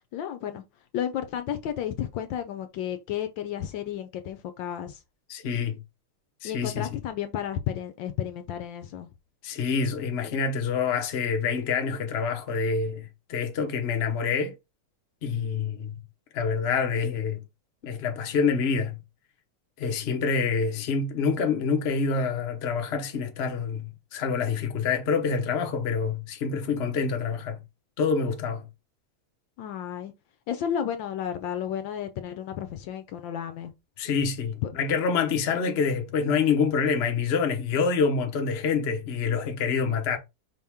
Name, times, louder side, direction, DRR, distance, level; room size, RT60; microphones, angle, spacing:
voice 1, 0.1-0.6 0.9-5.0 6.4-9.1 29.6-30.1 30.5-33.7 34.6-34.7, left 9 dB, 75° left, 1.2 m, -32 dB
voice 2, 5.3-5.8 6.4-6.9 9.4-14.5 15.2-16.0 16.3-17.4 17.8-19.0 19.8-27.6 28.0-28.6 34.0-40.2, left 5 dB, 50° left, 0.8 m, -27 dB
5.3 x 2.9 x 3.5 m
omnidirectional pair, 2.3 m